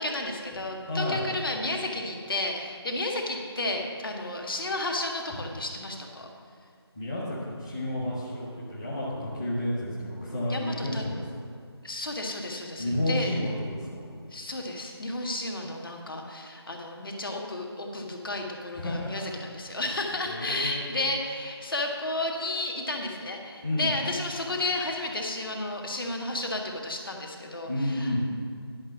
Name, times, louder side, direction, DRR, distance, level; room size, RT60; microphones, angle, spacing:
voice 1, 0.0-6.3 10.5-11.0 11.8-13.4 14.3-28.2, left 2 dB, 55° left, 1 dB, 1.6 m, -32 dB
voice 2, 0.9-1.2 6.9-11.2 12.8-13.5 18.8-19.2 20.2-20.8 23.6-23.9 27.7-28.2, left 1 dB, 10° left, -8 dB, 0.8 m, -30 dB
11.0 x 6.1 x 7.1 m, 2.3 s
figure-of-eight pair, 165°, 14 cm